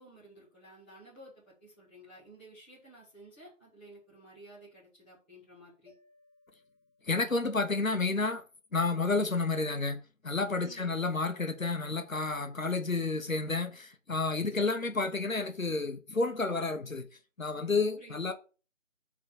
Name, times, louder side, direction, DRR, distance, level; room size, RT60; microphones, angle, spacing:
voice 1, 0.0-5.9 10.6-10.9 14.6-14.7 17.9-18.2, right 1 dB, 10° left, 1.9 m, -53 dB
Mallet percussion, 5.9-7.9, left 2 dB, 30° left, 2.4 m, -66 dB
voice 2, 7.1-8.4 8.7-17.1 17.4-18.3, left 3 dB, 85° left, 1.2 m, -30 dB
5.1 x 4.1 x 5.7 m
figure-of-eight pair, 165°, 40 cm